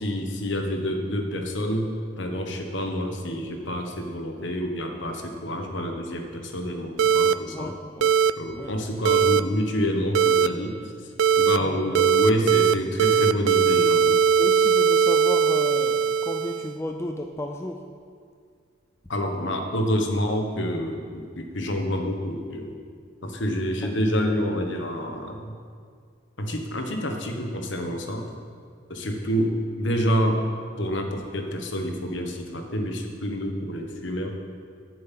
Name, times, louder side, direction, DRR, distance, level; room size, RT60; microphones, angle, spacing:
voice 1, 0.0-7.7 8.4-10.8 11.4-14.2 19.1-22.7 23.2-25.5 26.4-28.3 28.9-30.4 30.8-34.4, equal, 60° left, 4 dB, 1.3 m, -28 dB
sound 1, 7.0-7.3 8.0-8.3 9.1-9.4 10.2-10.5 11.2-11.6 12.0-12.7 13.0-16.7, right 7 dB, 70° right, 0.3 m, -20 dB
voice 2, 7.5-8.2 8.5-8.7 11.6-12.1 14.4-17.8 23.2-23.3 23.8-23.9 29.0-29.2, left 1 dB, 15° left, 3 dB, 0.4 m, -34 dB
9.5 x 7.8 x 7.5 m, 2.1 s
head